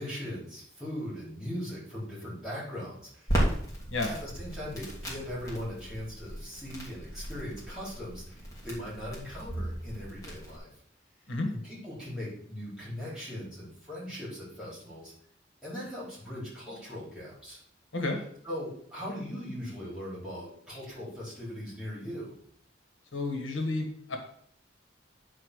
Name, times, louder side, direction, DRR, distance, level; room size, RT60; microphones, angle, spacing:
voice 1, 0.0-3.7 4.1-10.7 11.5-15.1 15.6-17.6 18.4-22.3, equal, 5° right, -8 dB, 4.3 m, -39 dB
Crackle, 3.3-10.6, equal, 20° left, 2.7 m, -35 dB
voice 2, 23.1-24.2, left 2 dB, 85° left, 4 dB, 1.5 m, -31 dB
9.8 x 4.4 x 6.4 m, 0.63 s
head